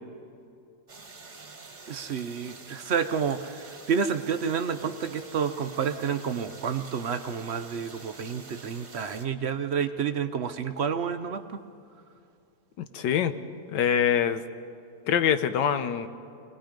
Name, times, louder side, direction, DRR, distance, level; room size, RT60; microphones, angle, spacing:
sound 1, 0.9-9.2, right 3 dB, 30° right, 1.2 m, -47 dB
voice 1, 1.9-11.6, right 6 dB, 60° right, 9 dB, 0.6 m, -29 dB
voice 2, 12.8-13.3 13.7-14.4 15.1-16.1, left 8 dB, 80° left, 11 dB, 1.5 m, -24 dB
25.5 x 19.5 x 5.2 m, 2.6 s
omnidirectional pair, 1.9 m